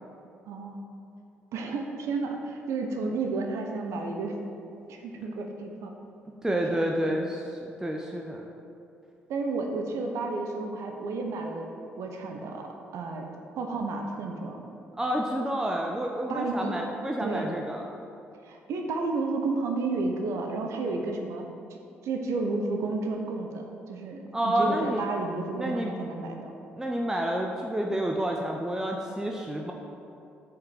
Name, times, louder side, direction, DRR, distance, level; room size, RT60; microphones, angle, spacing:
voice 1, 0.5-0.9 1.5-4.4 4.9-5.9 6.5-7.1 9.3-13.2 13.5-14.6 16.3-16.7 17.2-17.5 18.4-21.4 22.0-26.5, right 3 dB, 60° right, 3 dB, 0.9 m, -32 dB
voice 2, 6.4-8.4 14.9-17.9 24.3-25.0 25.6-25.9 26.8-29.7, right 1 dB, 10° right, 1 dB, 0.9 m, -29 dB
8.9 x 5.6 x 5.7 m, 2.6 s
figure-of-eight pair, 45°, 6 cm